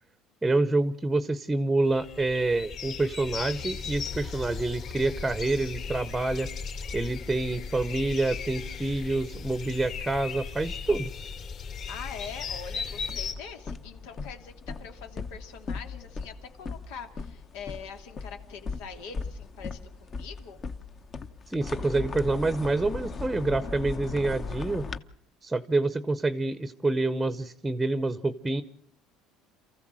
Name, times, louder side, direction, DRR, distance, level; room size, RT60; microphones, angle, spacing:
voice 1, 0.4-6.5 6.9-11.1 21.5-24.9 25.4-28.6, right 2 dB, 10° right, 13 dB, 0.8 m, -27 dB
sound 1, 1.8-13.3, left 5 dB, 45° left, 3.0 m, -37 dB
voice 2, 11.9-20.6, left 6 dB, 90° left, 5 dB, 2.8 m, -43 dB
sound 2, 12.8-25.0, left 4 dB, 30° left, 0.9 m, -38 dB
28.0 x 15.0 x 7.6 m, 0.65 s
cardioid pair, 145°, 0 cm